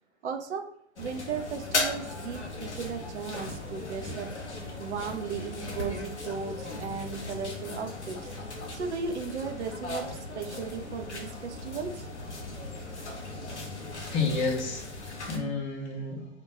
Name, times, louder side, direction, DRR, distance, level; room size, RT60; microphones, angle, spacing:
voice 1, 0.2-0.7 1.0-4.3 4.8-8.3 8.7-12.1, right 5 dB, 80° right, 5 dB, 0.5 m, -36 dB
sound 1, 1.0-15.4, left 2 dB, 85° left, 0.6 m, -37 dB
voice 2, 14.1-16.3, left 4 dB, 15° left, -1 dB, 0.4 m, -31 dB
2.4 x 2.1 x 2.9 m, 0.65 s
figure-of-eight pair, 95°, 34 cm